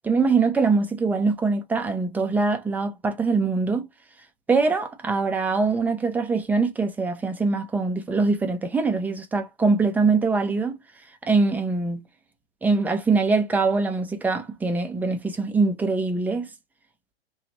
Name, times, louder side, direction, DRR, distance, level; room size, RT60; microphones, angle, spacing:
voice 1, 0.0-3.9 4.5-10.8 11.2-12.0 12.6-16.5, right 4 dB, 5° right, 0.5 m, -23 dB
2.9 x 2.3 x 4.1 m
hypercardioid pair, 125°, 31 cm